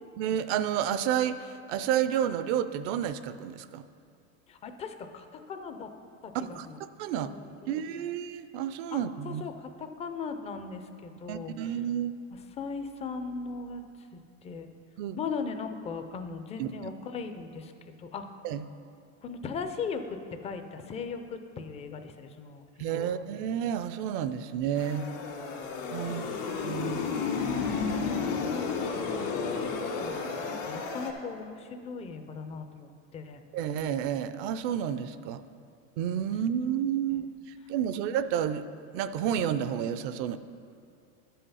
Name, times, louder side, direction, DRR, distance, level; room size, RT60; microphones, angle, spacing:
voice 1, 0.2-3.8 6.3-6.7 7.0-7.4 7.7-9.4 11.3-12.1 15.0-15.2 16.6-16.7 18.4-18.6 22.8-25.1 25.9-27.1 33.5-35.4 36.0-37.3 37.7-38.7 38.9-40.4, right 9 dB, 60° right, 12 dB, 0.6 m, -30 dB
voice 2, 4.5-5.9 6.2-6.8 7.2-7.8 8.9-11.8 12.3-14.7 15.2-18.3 19.2-23.2 26.0-26.4 28.4-33.4 37.1-37.2, left 5 dB, 20° left, 7 dB, 0.4 m, -39 dB
sound 1, 24.8-31.1, left 5 dB, 80° left, 1.8 m, -32 dB
11.5 x 5.7 x 5.6 m, 2.4 s
supercardioid pair, 140°, 39 cm